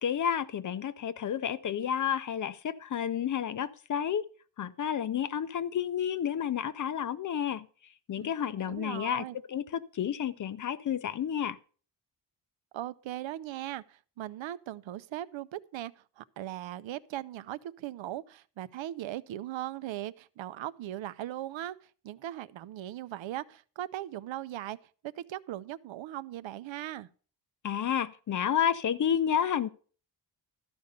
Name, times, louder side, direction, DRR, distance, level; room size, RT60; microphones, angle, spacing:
voice 1, 0.0-4.3 4.6-7.7 8.1-11.6 27.6-29.7, left 9 dB, 45° left, 0.5 m, -30 dB
voice 2, 8.6-9.4 12.7-24.8 25.0-27.1, right 13 dB, 85° right, 0.7 m, -39 dB
13.0 x 5.2 x 6.7 m
wide cardioid pair, 175°, 44 cm